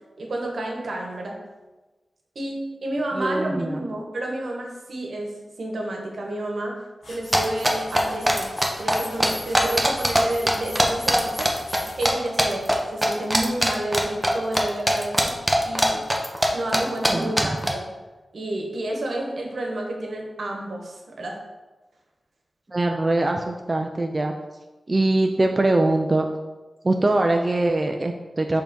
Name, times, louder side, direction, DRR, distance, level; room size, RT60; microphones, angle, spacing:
voice 1, 0.2-1.4 2.3-6.8 7.1-11.5 12.0-15.3 15.6-16.0 16.5-17.9 18.3-21.4, right 1 dB, 75° right, 0 dB, 1.1 m, -30 dB
voice 2, 3.1-3.9 17.1-17.6 22.7-24.3 24.9-26.3 26.8-28.6, right 2 dB, 35° right, 3 dB, 0.4 m, -22 dB
sound 1, 7.0-12.1, left 2 dB, 75° left, 1.2 m, -40 dB
sound 2, 7.3-10.2 10.5-12.1 12.4-12.7 13.0-14.6 14.9-16.5 16.7-16.8 17.0-17.1 17.4-17.7, equal, 10° right, 0.8 m, -20 dB
4.9 x 3.7 x 5.2 m, 1.2 s
wide cardioid pair, 70°, 0 cm